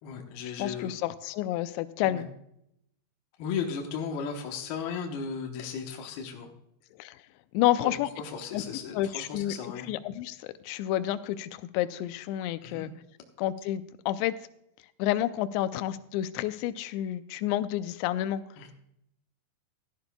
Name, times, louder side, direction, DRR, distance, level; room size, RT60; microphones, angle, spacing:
voice 1, 0.0-0.9 2.0-2.2 3.4-6.5 7.8-9.9 12.6-12.9 18.6-18.7, left 6 dB, 70° left, 2 dB, 2.7 m, -36 dB
voice 2, 0.6-2.3 7.0-7.2 7.5-8.1 8.5-8.6 8.9-9.5 9.9-12.9 13.4-14.3 15.0-18.4, left 13 dB, 85° left, 11 dB, 2.8 m, -29 dB
16.0 x 12.5 x 2.3 m, 0.76 s
omnidirectional pair, 5.1 m